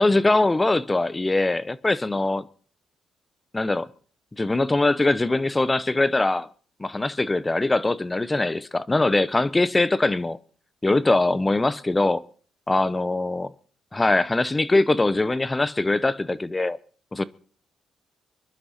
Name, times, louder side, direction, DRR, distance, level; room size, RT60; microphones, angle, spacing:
voice 1, 0.0-2.4 3.5-3.9 4.4-6.5 6.8-10.4 10.8-12.2 12.7-13.5 13.9-16.8 17.1-17.2, left 2 dB, 20° left, 0.7 m, -22 dB
24.5 x 11.0 x 4.2 m
cardioid pair, 90°, 0 cm